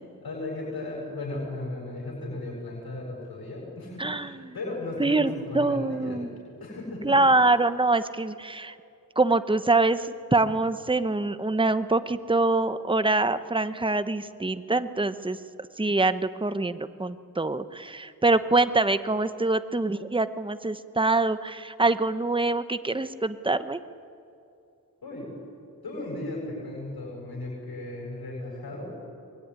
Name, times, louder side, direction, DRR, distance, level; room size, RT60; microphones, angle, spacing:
voice 1, 0.2-6.2 6.6-7.2 25.0-25.4 25.8-28.9, left 2 dB, 85° left, -3 dB, 7.8 m, -36 dB
voice 2, 4.0-4.5 5.0-6.3 7.0-8.8 9.2-15.4 15.8-23.8, right 2 dB, 15° right, 11 dB, 1.0 m, -25 dB
24.5 x 22.0 x 9.9 m, 2.6 s
wide cardioid pair, 75°, 36 cm